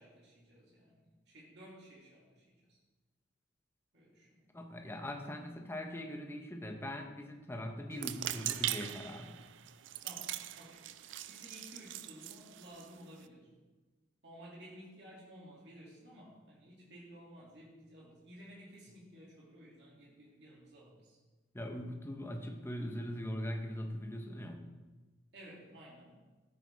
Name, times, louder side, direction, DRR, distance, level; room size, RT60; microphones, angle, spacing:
voice 1, 0.0-2.8 3.9-4.4 10.0-10.9 11.2-13.5 14.2-21.2 25.3-26.2, equal, 60° right, -4 dB, 2.5 m, -54 dB
voice 2, 4.5-9.4 21.5-24.7, equal, 15° left, 4 dB, 0.8 m, -41 dB
sound 1, 7.9-13.3, right 13 dB, 80° right, 0.4 m, -41 dB
13.0 x 7.9 x 3.4 m, 1.2 s
head